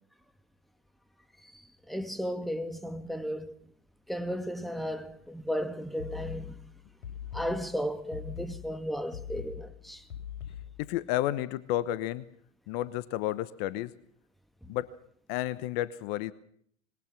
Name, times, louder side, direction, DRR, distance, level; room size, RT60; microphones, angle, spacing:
voice 1, 1.4-3.5 4.1-6.6 7.3-10.1 14.6-14.7, equal, ahead, 2.0 m, -35 dB
sound 1, 6.0-11.0, left 9 dB, 70° left, 7.9 m, -42 dB
voice 2, 10.8-12.2 12.7-13.9 14.7-14.9 15.3-16.3, left 14 dB, 50° left, 1.1 m, -31 dB
25.0 x 22.0 x 6.1 m
hypercardioid pair, 90°, 38 cm